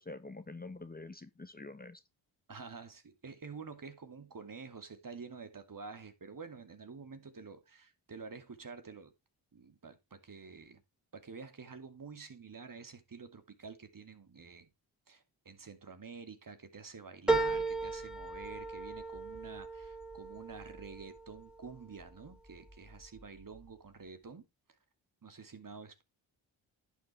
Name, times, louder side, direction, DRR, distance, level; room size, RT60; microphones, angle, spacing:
voice 1, 0.0-2.0, left 3 dB, 20° left, 1.3 m, -46 dB
voice 2, 2.5-9.1 9.5-10.8 11.1-14.7 15.1-24.5 25.2-26.0, right 5 dB, 40° right, 2.5 m, -49 dB
sound 1, 17.3-22.0 22.5-23.2 23.6-23.7, right 3 dB, ahead, 3.2 m, -36 dB
11.0 x 7.5 x 3.3 m
supercardioid pair, 50°, 49 cm